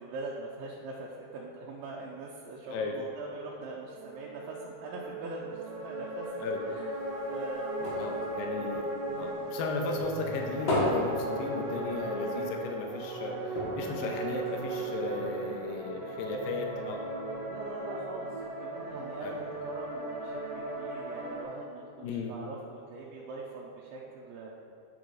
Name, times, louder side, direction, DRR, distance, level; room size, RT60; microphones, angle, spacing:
voice 1, 0.0-6.9 7.3-8.2 8.5-9.5 11.4-11.8 15.3-15.6 17.5-24.5, right 3 dB, 85° right, -4 dB, 2.5 m, -43 dB
sound 1, 4.0-21.4, right 1 dB, 65° right, 1.6 m, -37 dB
sound 2, 6.9-9.6 9.9-12.2 12.5-12.6 12.9-13.1 13.5-15.0 15.7-15.8, left 1 dB, 55° left, 1.4 m, -34 dB
voice 2, 8.0-8.9 9.2-17.0 19.2-19.3 22.0-22.3, left 3 dB, 80° left, 2 dB, 2.3 m, -35 dB
9.7 x 3.9 x 4.8 m, 2.7 s
omnidirectional pair, 4.1 m